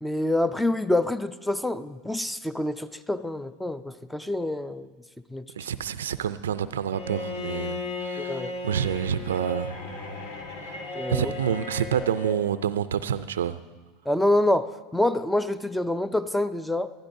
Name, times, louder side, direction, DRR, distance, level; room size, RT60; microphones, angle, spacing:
voice 1, 0.0-4.9 5.3-5.4 8.2-8.5 10.9-11.3 14.1-16.9, left 1 dB, 5° left, 14 dB, 0.5 m, -26 dB
voice 2, 5.6-9.8 10.6-10.8 11.1-13.6, right 8 dB, 85° right, 14 dB, 0.4 m, -28 dB
Bowed string instrument, 6.9-12.4, left 2 dB, 65° left, 1.7 m, -35 dB
18.5 x 12.0 x 2.7 m, 1.3 s
hypercardioid pair, 95°, 0 cm